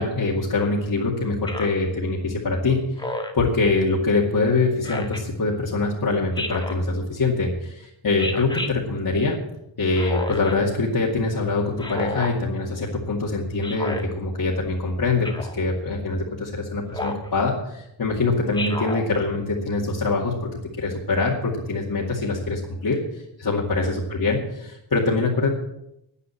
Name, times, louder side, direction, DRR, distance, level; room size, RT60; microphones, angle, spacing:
voice 1, 0.0-9.4 9.8-20.3 20.8-25.5, left 3 dB, 50° left, -5 dB, 2.3 m, -24 dB
Speech synthesizer, 1.5-1.8 3.0-3.5 4.8-5.2 6.4-6.8 8.2-8.7 10.0-10.5 11.8-12.3 13.6-14.0 15.2-15.6 16.9-17.3 18.5-19.0, left 2 dB, 10° left, 1.6 m, -30 dB
9.9 x 9.7 x 7.2 m, 0.82 s
wide cardioid pair, 95°, 46 cm